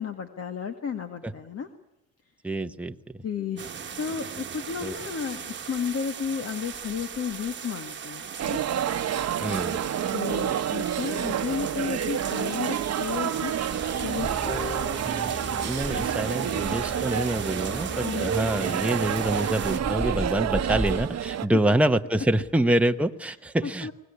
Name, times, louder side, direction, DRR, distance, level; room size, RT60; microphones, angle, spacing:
voice 1, 0.0-1.7 3.2-3.7 4.0-8.6 10.1-13.5 14.0-14.5 18.0-18.3 21.5-21.6 23.6-23.9, left 7 dB, 50° left, 7 dB, 1.8 m, -33 dB
voice 2, 2.4-3.2 4.8-5.0 9.4-9.9 15.0-15.3 15.6-23.9, right 1 dB, 5° right, 6 dB, 1.0 m, -26 dB
sound 1, 3.6-19.8, right 7 dB, 40° right, 1.3 m, -38 dB
sound 2, 8.4-21.5, right 10 dB, 60° right, 1.1 m, -29 dB
sound 3, 12.9-21.1, left 1 dB, 15° left, 3.8 m, -36 dB
24.0 x 18.5 x 9.8 m, 0.87 s
cardioid pair, 90°, 30 cm